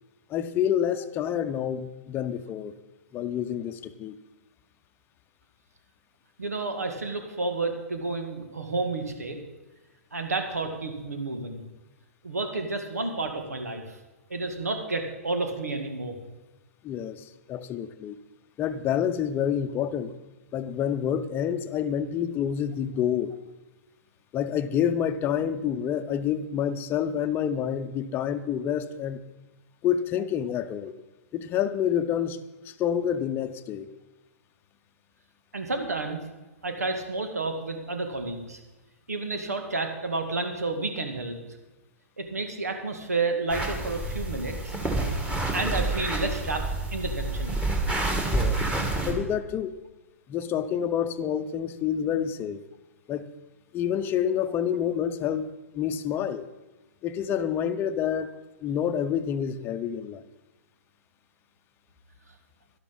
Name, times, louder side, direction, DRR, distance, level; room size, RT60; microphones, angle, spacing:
voice 1, 0.3-2.7 3.1-4.2 16.8-18.2 18.6-20.1 20.5-23.3 24.3-29.2 29.8-30.9 31.3-32.4 32.6-33.9 48.3-48.6 49.0-49.8 50.3-52.6 53.1-53.3 53.7-55.5 55.7-56.5 57.0-58.3 58.6-60.2, left 9 dB, 25° left, 11 dB, 0.8 m, -28 dB
voice 2, 6.4-9.4 10.1-11.6 12.2-14.0 14.3-16.2 35.5-36.2 36.6-38.6 39.1-41.4 42.2-44.7 45.5-46.6 46.9-47.6, right 3 dB, 80° right, 5 dB, 2.1 m, -30 dB
sound 1, 43.5-49.1, right 2 dB, 10° right, 2.3 m, -28 dB
12.0 x 12.0 x 5.4 m, 1.1 s
figure-of-eight pair, 115°, 8 cm